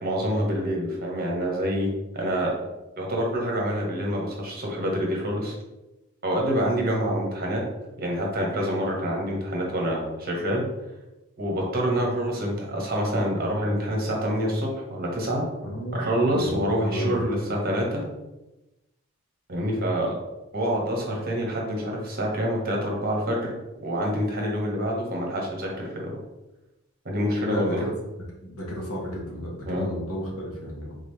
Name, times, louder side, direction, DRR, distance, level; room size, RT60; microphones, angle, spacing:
voice 1, 0.0-1.9 2.1-2.5 3.0-5.5 6.2-7.6 8.0-10.6 11.4-15.4 15.9-18.0 19.5-20.1 20.5-23.5 23.8-25.9 27.0-27.9 29.6-29.9, equal, 40° right, -1 dB, 1.1 m, -26 dB
voice 2, 15.6-17.2 27.4-27.9 28.4-31.0, equal, 80° left, -2 dB, 1.3 m, -33 dB
3.8 x 3.7 x 3.3 m, 0.98 s
head